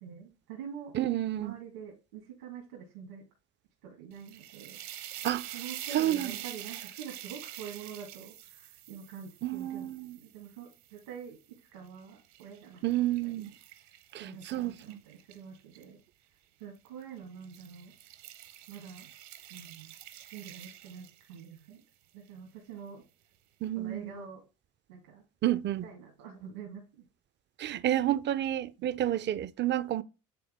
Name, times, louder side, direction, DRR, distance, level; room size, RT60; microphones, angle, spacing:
voice 1, 0.0-1.0 1.4-3.2 3.8-5.3 5.5-13.9 14.2-16.0 16.6-17.9 18.7-19.1 19.5-19.9 20.3-21.8 22.1-23.0 23.8-24.4 24.9-25.2 25.7-26.8 28.8-29.0, right 7 dB, 80° right, 1.9 m, -46 dB
voice 2, 0.9-1.5 5.2-5.5 5.9-6.4 9.4-10.2 12.8-13.5 14.1-15.0 23.6-24.2 25.4-25.9 27.6-30.0, right 13 dB, 25° right, 0.4 m, -30 dB
sound 1, 4.1-11.3 11.9-15.8 16.7-17.0 17.4-21.6, right 13 dB, 65° right, 1.0 m, -46 dB
9.4 x 3.5 x 3.5 m
hypercardioid pair, 65°, 43 cm